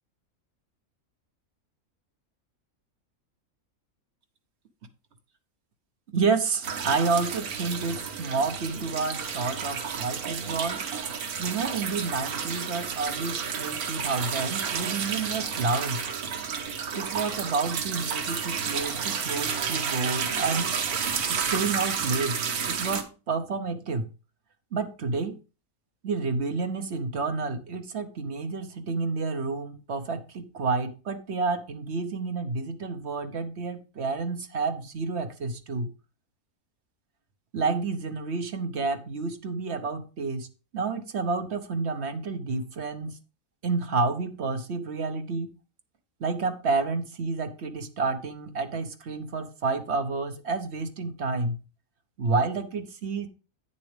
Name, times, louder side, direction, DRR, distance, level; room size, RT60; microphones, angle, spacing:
voice 1, 6.1-10.8 11.4-16.0 16.9-20.7 21.3-22.4 22.7-24.1 24.7-25.4 26.0-35.9 37.5-40.5 40.7-43.2 43.6-45.5 46.2-51.6 52.2-53.3, right 4 dB, 50° right, 7 dB, 1.1 m, -29 dB
sound 1, 6.6-23.0, right 6 dB, 85° right, 1.5 m, -31 dB
9.0 x 7.0 x 3.3 m, 0.32 s
omnidirectional pair, 1.5 m